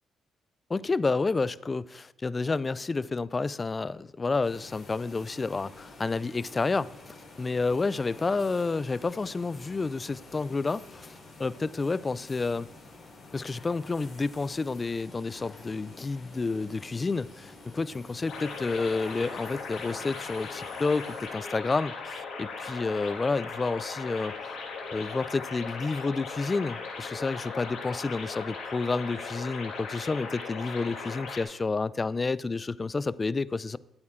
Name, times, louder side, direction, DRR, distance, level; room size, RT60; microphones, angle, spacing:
voice 1, 0.7-12.7 13.3-24.6 24.9-33.8, left 3 dB, 30° left, 0.4 m, -30 dB
sound 1, 4.4-21.3, left 3 dB, 45° left, 3.3 m, -49 dB
sound 2, 18.3-31.4, left 4 dB, 75° left, 2.7 m, -38 dB
13.0 x 8.8 x 3.7 m
cardioid pair, 90°, 0 cm